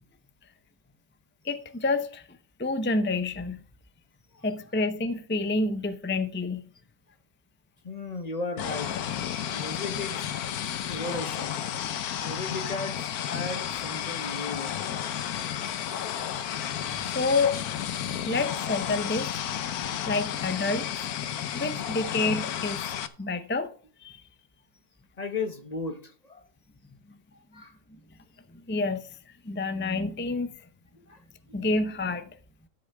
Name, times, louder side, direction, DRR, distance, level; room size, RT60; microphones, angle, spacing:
voice 1, 1.4-3.6 4.4-6.6 15.2-15.9 17.1-19.3 20.1-20.9 21.5-22.8 23.2-23.7 24.0-24.2 28.7-30.5 31.5-32.3, left 3 dB, 15° left, 0.3 m, -29 dB
voice 2, 7.8-8.9 9.5-10.2 10.9-11.5 12.2-14.8 19.0-19.1 19.8-20.0 25.2-26.4 27.5-27.7 31.0-31.2, left 3 dB, 30° left, 0.9 m, -35 dB
sound 1, 8.6-23.1, left 10 dB, 80° left, 1.3 m, -32 dB
13.5 x 8.3 x 3.5 m
omnidirectional pair, 1.6 m